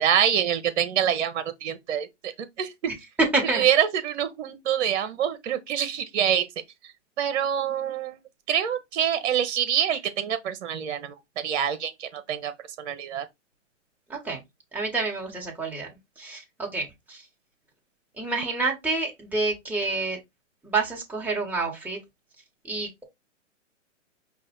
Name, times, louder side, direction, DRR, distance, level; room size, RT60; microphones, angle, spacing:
voice 1, 0.0-2.3 2.6-2.7 3.5-6.5 7.2-8.2 8.5-12.5 12.8-13.2, right 9 dB, 60° right, 0.9 m, -26 dB
voice 2, 3.3-3.6 14.1-14.4 14.7-15.9 16.2-17.2 18.2-20.2 20.6-22.0 22.7-23.0, right 3 dB, 5° right, 1.4 m, -28 dB
5.3 x 2.5 x 3.7 m
hypercardioid pair, 130°, 38 cm